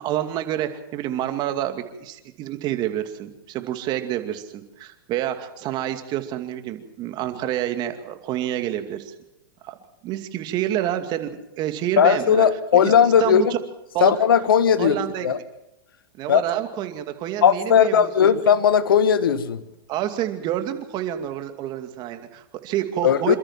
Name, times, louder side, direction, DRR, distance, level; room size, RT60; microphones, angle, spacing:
voice 1, 0.0-9.1 9.6-9.7 10.0-12.4 12.7-12.9 13.2-13.5 13.9-14.1 14.8-15.3 16.2-18.3 19.9-23.4, right 12 dB, 40° right, 8 dB, 2.4 m, -28 dB
voice 2, 12.0-13.5 14.0-15.4 16.3-16.4 17.4-19.6 23.0-23.4, left 8 dB, 80° left, 13 dB, 1.4 m, -17 dB
27.5 x 13.5 x 7.4 m, 0.91 s
hypercardioid pair, 120°, 12 cm